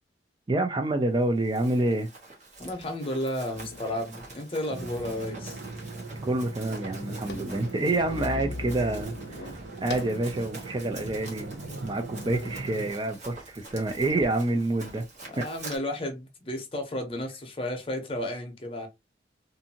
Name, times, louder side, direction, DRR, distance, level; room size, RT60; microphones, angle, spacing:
voice 1, 0.5-2.1 6.2-15.0 15.4-15.5, right 2 dB, 25° right, 0.3 m, -28 dB
Run, 1.2-15.8, right 3 dB, 40° right, 1.0 m, -46 dB
voice 2, 2.6-5.6 15.3-18.9, left 1 dB, 30° left, 0.7 m, -33 dB
sound 1, 3.5-4.1 4.8-5.8 6.1-6.2 6.5-10.3 10.8-10.9 11.6-11.7 12.2-12.7 13.7-14.3, left 3 dB, 65° left, 0.5 m, -41 dB
sound 2, 4.7-12.9, right 3 dB, 65° right, 0.8 m, -40 dB
2.6 x 2.5 x 2.7 m
head